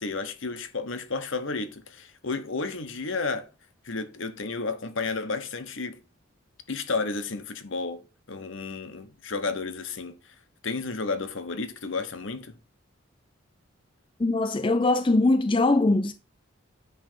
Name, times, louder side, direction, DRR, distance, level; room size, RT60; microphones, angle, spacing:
voice 1, 0.0-3.5 3.8-6.0 6.7-8.0 8.3-10.3 10.6-12.6, left 3 dB, 65° left, 1.0 m, -32 dB
voice 2, 14.2-16.1, left 2 dB, 25° left, 0.4 m, -22 dB
9.5 x 3.4 x 6.8 m
head